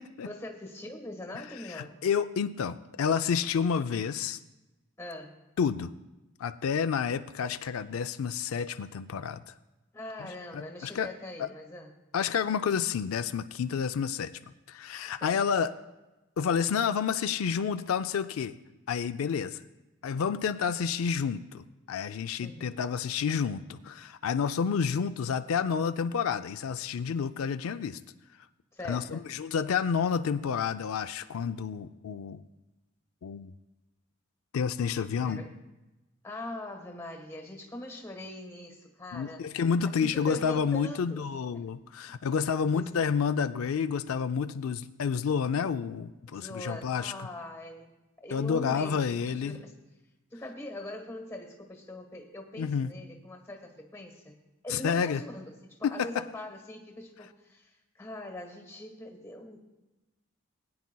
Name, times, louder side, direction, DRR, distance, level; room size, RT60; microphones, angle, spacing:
voice 1, 0.2-2.0 5.0-5.4 9.9-11.9 15.2-15.4 22.4-22.9 28.7-29.2 35.1-35.5 36.2-39.5 39.8-41.3 41.5-41.6 42.1-42.2 42.7-43.0 46.3-48.0 48.2-49.8 50.3-54.4 54.6-59.6, left 1 dB, 15° left, 4 dB, 1.3 m, -42 dB
voice 2, 1.7-4.4 5.6-5.9 6.4-9.5 10.5-11.1 11.4-11.5 12.1-14.3 14.7-15.7 16.4-18.6 18.9-19.6 20.0-28.0 28.9-32.4 33.2-33.5 34.5-35.4 39.1-47.1 48.3-49.6 52.6-52.9 54.7-55.2 55.8-56.2, left 6 dB, 80° left, 10 dB, 0.4 m, -29 dB
20.0 x 9.5 x 2.2 m, 1.0 s
head